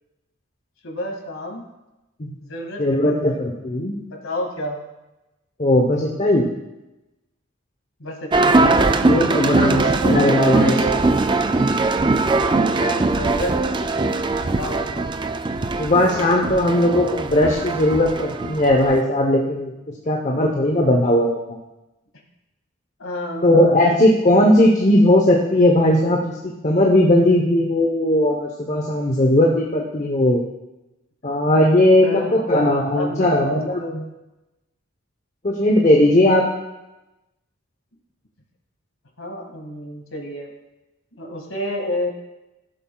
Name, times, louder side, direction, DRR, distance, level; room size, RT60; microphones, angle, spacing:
voice 1, 0.8-1.6 2.4-3.4 4.1-4.8 8.0-8.6 9.4-11.0 12.5-15.1 23.0-24.6 32.0-33.9 39.2-40.5 41.2-42.1, left 1 dB, 90° left, 1 dB, 2.1 m, -31 dB
voice 2, 2.8-4.0 5.6-6.5 8.4-11.0 15.8-19.7 20.1-21.6 23.4-26.3 26.6-30.4 31.2-33.8 35.4-36.4, left 1 dB, 35° left, 0 dB, 0.9 m, -18 dB
sound 1, 8.3-19.0, right 3 dB, 25° right, 0.3 m, -20 dB
17.0 x 7.7 x 2.3 m, 0.99 s
head